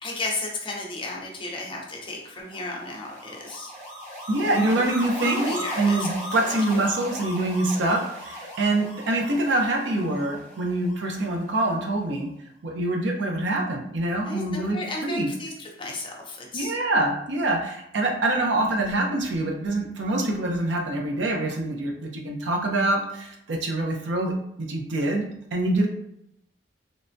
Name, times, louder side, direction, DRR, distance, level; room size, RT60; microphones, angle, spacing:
voice 1, 0.0-3.7 4.7-6.6 14.2-16.8, left 2 dB, 25° left, -1 dB, 0.5 m, -34 dB
sound 1, 2.4-11.6, equal, 45° right, 1.2 m, -37 dB
voice 2, 4.3-12.3 12.6-15.3 16.5-24.3 24.6-25.2 25.5-25.9, right 2 dB, 70° right, 1 dB, 0.5 m, -25 dB
3.2 x 2.1 x 2.5 m, 0.78 s
head